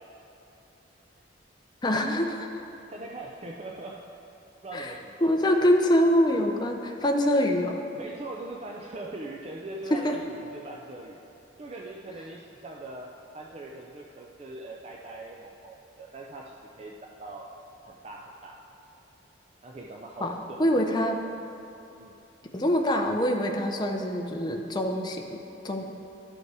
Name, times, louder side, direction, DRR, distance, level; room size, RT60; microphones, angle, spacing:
voice 1, 1.8-2.5 4.7-4.9 5.2-7.8 9.9-10.2 20.2-20.3 20.6-21.2 22.5-25.4 25.6-25.8, equal, 20° left, 3 dB, 0.6 m, -24 dB
voice 2, 2.9-4.1 4.6-5.3 7.9-11.2 11.6-17.5 17.8-18.6 19.6-21.1 22.0-22.1, right 2 dB, 30° right, -1 dB, 0.4 m, -41 dB
11.5 x 5.3 x 4.7 m, 2.9 s
head